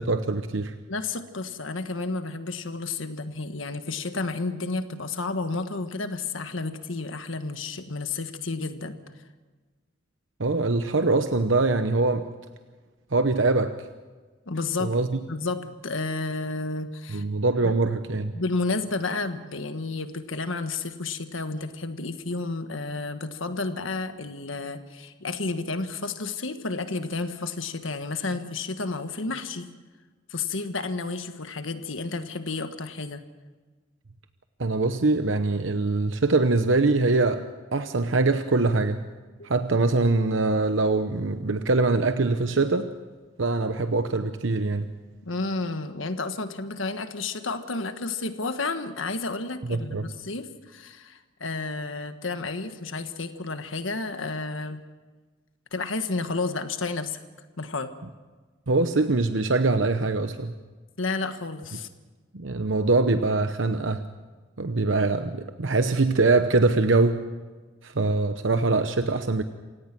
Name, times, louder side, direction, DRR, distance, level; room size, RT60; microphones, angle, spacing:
voice 1, 0.1-0.7 10.4-12.3 13.1-13.9 14.8-15.2 17.1-18.3 34.6-39.0 39.4-42.9 43.4-44.9 49.7-50.1 58.7-60.5 62.3-64.0 64.6-67.2 67.8-69.4, right 3 dB, 80° right, 9 dB, 0.9 m, -23 dB
voice 2, 0.9-9.0 14.5-14.9 15.3-17.2 17.6-17.7 18.3-29.7 30.3-33.2 45.2-54.8 55.7-57.2 57.6-57.9 61.0-61.9, left 3 dB, 85° left, 8 dB, 1.6 m, -31 dB
28.0 x 17.5 x 6.1 m, 1.3 s
head